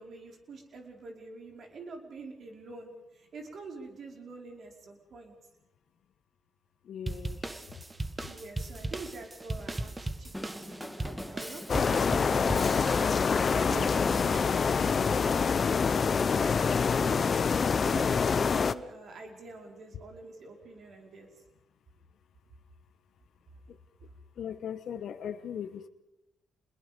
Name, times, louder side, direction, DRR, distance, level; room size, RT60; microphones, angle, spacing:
voice 1, 0.0-5.3 8.3-15.9 16.3-17.5 17.8-21.3, right 3 dB, 65° right, 2 dB, 5.2 m, -46 dB
voice 2, 6.9-7.4 24.4-25.9, left 8 dB, 70° left, 10 dB, 1.3 m, -38 dB
sound 1, 7.1-13.5, right 2 dB, 25° right, 1.8 m, -38 dB
Drum kit, 10.3-14.5, left 1 dB, 5° left, 1.9 m, -41 dB
sound 2, 11.7-18.7, left 5 dB, 50° left, 0.9 m, -26 dB
28.0 x 21.0 x 5.4 m, 0.86 s
supercardioid pair, 55°, 0 cm